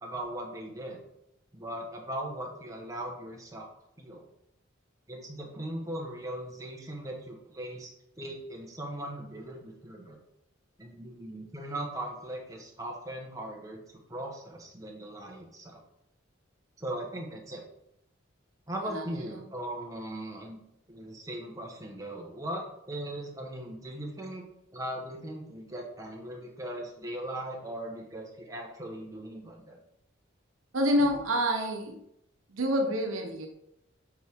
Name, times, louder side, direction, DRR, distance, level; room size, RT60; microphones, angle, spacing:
voice 1, 0.0-1.0 1.5-3.7 4.0-4.3 5.1-10.2 10.8-13.8 14.1-15.8 16.8-17.6 18.7-20.6 20.9-24.5 24.7-29.8, right 1 dB, 15° right, -1 dB, 1.2 m, -39 dB
voice 2, 18.9-19.4 30.7-32.0 32.5-33.5, equal, 90° right, 3 dB, 1.0 m, -28 dB
7.4 x 4.6 x 3.6 m, 0.79 s
head